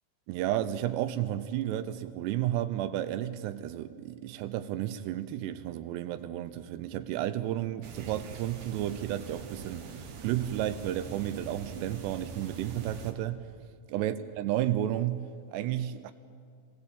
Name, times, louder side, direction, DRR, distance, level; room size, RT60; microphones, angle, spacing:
voice 1, 0.3-13.5 13.9-16.1, right 12 dB, 85° right, 2.8 m, -32 dB
sound 1, 7.8-13.1, right 4 dB, 60° right, 2.6 m, -44 dB
23.5 x 16.0 x 8.3 m
omnidirectional pair, 4.8 m